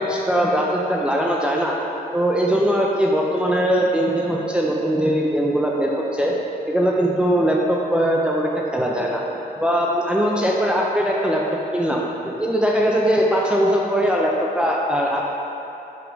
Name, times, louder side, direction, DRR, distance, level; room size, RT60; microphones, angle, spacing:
voice 1, 0.0-1.8 2.1-6.3 6.6-9.2 9.6-11.4 11.7-12.0 12.3-15.2, equal, 5° right, -2 dB, 0.5 m, -20 dB
5.9 x 3.5 x 5.1 m, 2.9 s
wide cardioid pair, 115°, 17 cm